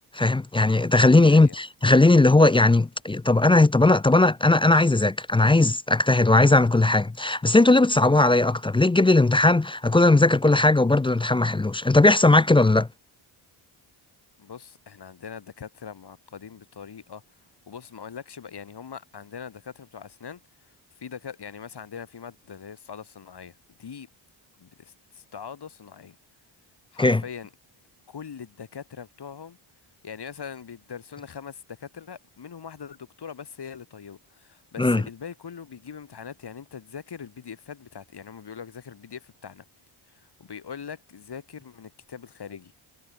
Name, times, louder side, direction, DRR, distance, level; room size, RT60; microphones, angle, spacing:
voice 1, 0.1-12.9 27.0-27.2 34.8-35.0, left 2 dB, 10° left, 0.5 m, -18 dB
voice 2, 1.0-1.6 14.4-17.2 17.7-23.5 23.8-24.1 24.6-26.2 26.9-27.5 28.1-29.6 30.0-39.6 40.1-42.7, left 7 dB, 50° left, 5.6 m, -41 dB
cardioid pair, 80°, 50 cm